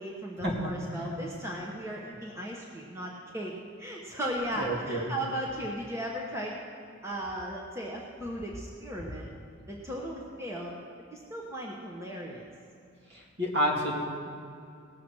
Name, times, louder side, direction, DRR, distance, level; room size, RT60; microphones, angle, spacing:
voice 1, 0.0-6.6 7.0-9.3 9.7-10.7 11.1-12.5, equal, 15° right, -2 dB, 1.1 m, -36 dB
voice 2, 4.6-5.1 13.4-13.9, equal, 55° right, -2 dB, 2.6 m, -28 dB
18.5 x 7.0 x 6.1 m, 2.5 s
head